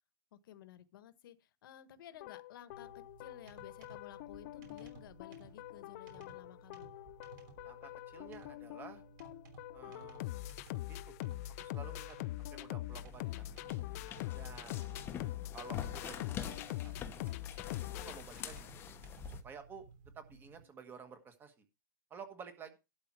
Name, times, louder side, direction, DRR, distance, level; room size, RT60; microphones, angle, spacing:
voice 1, 0.3-6.9 9.9-10.1 20.3-20.9, left 11 dB, 60° left, 1.3 m, -55 dB
sound 1, 2.2-18.9, left 16 dB, 40° left, 0.5 m, -43 dB
sound 2, 2.7-20.6, right 5 dB, 50° right, 3.4 m, -58 dB
voice 2, 7.6-9.0 9.7-10.3 10.9-11.1 11.6-12.2 12.5-13.5 14.3-15.1 15.5-17.1 17.9-18.7 19.4-19.9 20.1-21.6 22.1-22.8, right 6 dB, 15° right, 1.5 m, -52 dB
sound 3, 12.9-19.4, left 8 dB, 20° left, 0.9 m, -46 dB
12.0 x 4.3 x 7.6 m
hypercardioid pair, 155°, 13 cm